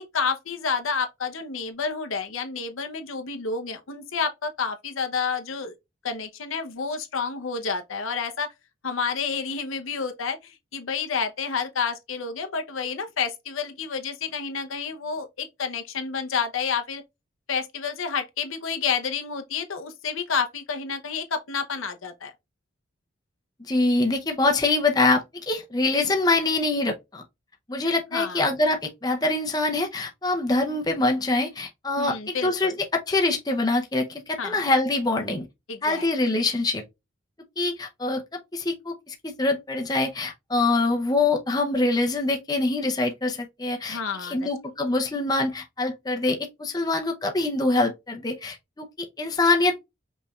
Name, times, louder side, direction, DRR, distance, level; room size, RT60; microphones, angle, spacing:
voice 1, 0.0-5.7 6.0-8.5 8.8-17.0 17.5-22.3 28.1-28.4 32.0-32.8 34.4-34.6 35.7-36.1 43.9-44.5, left 5 dB, 90° left, 0.8 m, -29 dB
voice 2, 23.7-27.2 27.7-35.5 35.8-36.8 37.6-49.8, left 2 dB, 20° left, 0.6 m, -24 dB
5.3 x 3.3 x 2.3 m
head